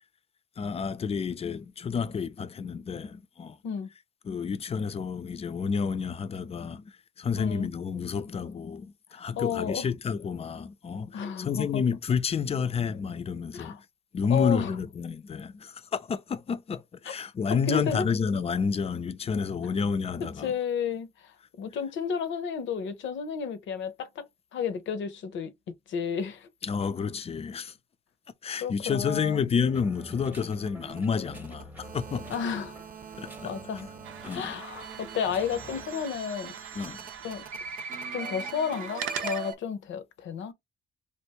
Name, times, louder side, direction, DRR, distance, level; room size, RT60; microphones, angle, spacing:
voice 1, 0.6-3.6 4.2-13.8 14.1-20.5 26.6-27.7 28.4-32.4 33.2-33.5 34.2-34.6 36.7-37.0, left 6 dB, 30° left, 0.4 m, -30 dB
voice 2, 7.3-7.7 9.1-9.9 11.1-11.8 13.5-13.8 14.3-14.8 17.0-17.1 17.5-18.1 20.4-25.5 25.9-26.5 28.6-29.5 32.3-32.8 33.4-33.9 34.3-36.6 37.2-37.4 38.1-40.5, left 7 dB, 70° left, 0.7 m, -32 dB
sound 1, 29.6-35.8, right 1 dB, 10° right, 0.8 m, -48 dB
sound 2, 30.0-39.6, right 5 dB, 45° right, 0.7 m, -41 dB
sound 3, 34.0-39.5, right 9 dB, 85° right, 0.6 m, -43 dB
3.3 x 2.5 x 2.9 m
cardioid pair, 90°, 20 cm